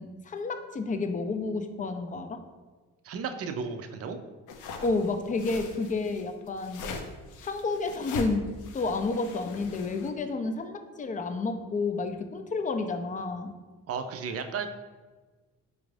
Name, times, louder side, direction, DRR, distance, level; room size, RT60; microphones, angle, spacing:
voice 1, 0.0-2.4 4.8-6.8 7.4-8.5 8.7-13.5, left 3 dB, 25° left, 7 dB, 0.4 m, -30 dB
voice 2, 3.0-4.2 13.9-14.7, right 5 dB, 50° right, 7 dB, 0.5 m, -34 dB
sound 1, 4.5-10.1, left 3 dB, 80° left, 0.6 m, -41 dB
5.0 x 2.5 x 3.2 m, 1.3 s
cardioid pair, 90°, 30 cm